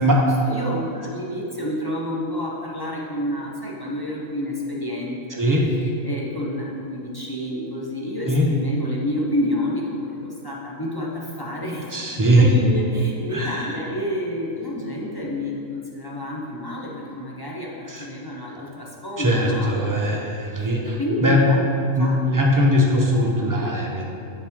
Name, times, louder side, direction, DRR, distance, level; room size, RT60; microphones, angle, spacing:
voice 1, 0.1-5.4 5.7-11.9 12.3-21.6 22.0-22.4, left 1 dB, 25° left, -4 dB, 0.5 m, -29 dB
voice 2, 11.9-12.5 13.3-13.8 17.9-18.0 19.2-21.5 22.0-24.1, equal, 35° right, -1 dB, 0.3 m, -20 dB
7.2 x 4.9 x 3.6 m, 2.7 s
omnidirectional pair, 1.3 m